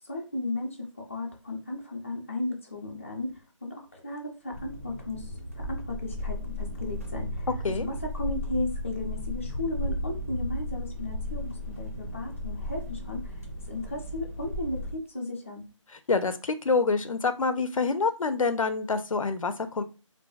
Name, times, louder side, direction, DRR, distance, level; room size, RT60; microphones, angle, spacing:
voice 1, 0.0-7.5 7.8-13.4 13.7-15.7, left 2 dB, 25° left, 0 dB, 0.5 m, -35 dB
sound 1, 4.5-14.9, left 1 dB, 25° right, 0.4 m, -35 dB
voice 2, 16.1-19.8, left 4 dB, 80° left, 10 dB, 0.5 m, -26 dB
3.4 x 2.6 x 2.3 m, 0.32 s
figure-of-eight pair, 175°, 17 cm